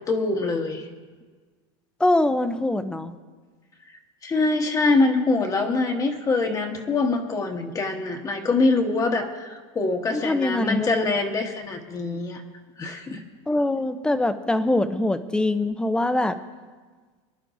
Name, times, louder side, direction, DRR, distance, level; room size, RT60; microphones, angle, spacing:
voice 1, 0.1-0.9 4.2-12.4 12.8-13.2, left 3 dB, 20° left, 4 dB, 1.1 m, -24 dB
voice 2, 2.0-3.1 10.1-11.1 13.5-16.3, left 2 dB, 5° left, 10 dB, 0.5 m, -23 dB
24.0 x 11.0 x 2.6 m, 1.4 s
supercardioid pair, 140°, 16 cm